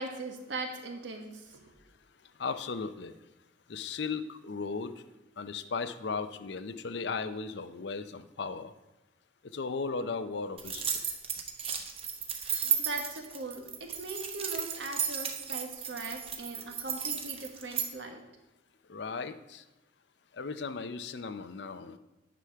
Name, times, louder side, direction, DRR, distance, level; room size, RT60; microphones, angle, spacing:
voice 1, 0.0-1.6 12.4-18.2, right 2 dB, 70° right, 4 dB, 1.4 m, -40 dB
voice 2, 2.4-3.1 3.7-4.9 5.4-8.7 9.5-10.9 18.9-19.6 20.3-22.0, left 4 dB, 60° left, 11 dB, 0.5 m, -36 dB
sound 1, 10.6-17.9, right 7 dB, 30° right, 0.8 m, -34 dB
9.9 x 4.9 x 5.7 m, 1.0 s
head